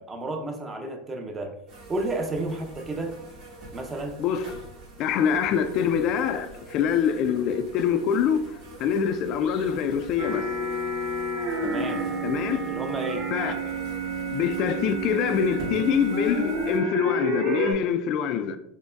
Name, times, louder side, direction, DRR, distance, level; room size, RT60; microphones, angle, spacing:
voice 1, 0.0-1.5 1.9-3.2 3.7-4.1 11.6-12.0 12.7-13.3, right 2 dB, 20° right, 0.6 m, -31 dB
sound 1, 1.7-16.8, right 1 dB, 55° right, 1.4 m, -45 dB
voice 2, 4.2-4.6 5.0-10.5 12.2-12.7 13.3-13.6 14.3-18.6, left 7 dB, 50° left, 0.3 m, -25 dB
sound 2, 10.2-17.7, right 1 dB, 75° right, 1.1 m, -29 dB
5.2 x 2.1 x 2.3 m
supercardioid pair, 120°, 0 cm